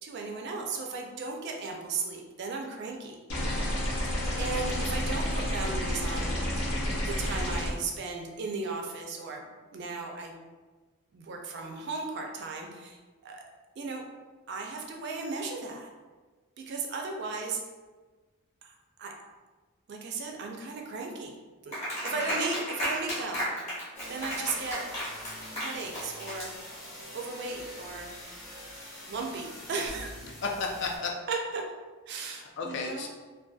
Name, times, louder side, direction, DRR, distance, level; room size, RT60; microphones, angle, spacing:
voice 1, 0.0-3.2 3.9-6.4 6.8-10.4 11.1-13.4 13.8-14.0 14.5-15.9 16.6-17.6 18.6-19.1 19.9-21.4 21.6-23.4 24.1-24.8 25.5-26.5 27.1-28.1 29.1-30.1 31.3-31.6 32.1-33.1, right 4 dB, 50° right, 2 dB, 0.3 m, -36 dB
sound 1, 3.3-7.7, equal, 90° left, 0.6 m, -30 dB
Clapping, 21.7-27.0, equal, 30° left, 0.9 m, -34 dB
voice 2, 22.0-22.4 30.2-31.2 32.2-33.1, left 4 dB, 55° left, 1 dB, 0.4 m, -34 dB
sound 2, 23.9-31.0, equal, 5° left, 0.6 m, -44 dB
2.6 x 2.3 x 2.3 m, 1.3 s
head